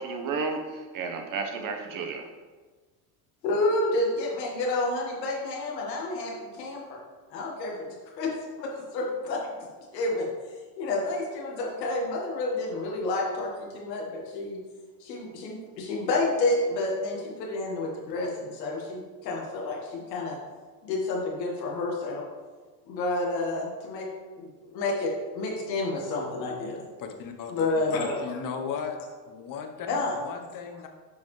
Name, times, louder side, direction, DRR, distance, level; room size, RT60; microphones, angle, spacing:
voice 1, 0.0-2.3, right 4 dB, 40° right, 4 dB, 1.1 m, -32 dB
voice 2, 3.4-7.0 7.3-8.3 8.6-9.5 9.9-10.3 10.8-14.6 15.0-20.4 20.8-22.2 22.8-24.1 24.4-26.8 27.5-28.4 29.9-30.2, left 2 dB, 90° left, -2 dB, 1.9 m, -29 dB
voice 3, 27.0-29.0 29.3-30.9, left 6 dB, 40° left, 5 dB, 1.1 m, -37 dB
8.0 x 5.3 x 3.3 m, 1.4 s
hypercardioid pair, 90°, 49 cm